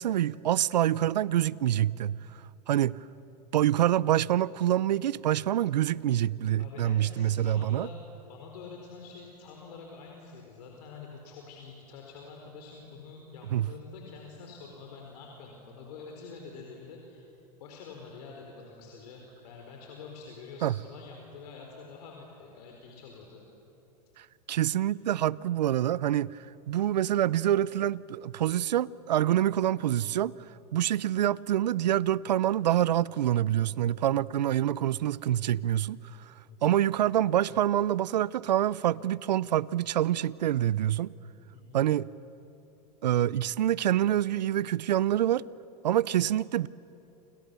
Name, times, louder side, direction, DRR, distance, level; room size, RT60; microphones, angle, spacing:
voice 1, 0.0-2.2 2.7-3.0 3.5-7.9 13.5-13.7 20.6-20.7 24.2-30.3 30.7-36.0 36.3-36.4 36.6-41.1 41.7-42.1 43.0-45.4 45.8-46.7, right 12 dB, 85° right, 0.6 m, -26 dB
voice 2, 6.6-17.2 17.6-23.4 36.5-36.8 41.5-41.8, left 4 dB, 70° left, 4.4 m, -47 dB
29.5 x 28.5 x 6.9 m
hypercardioid pair, 105°, 21 cm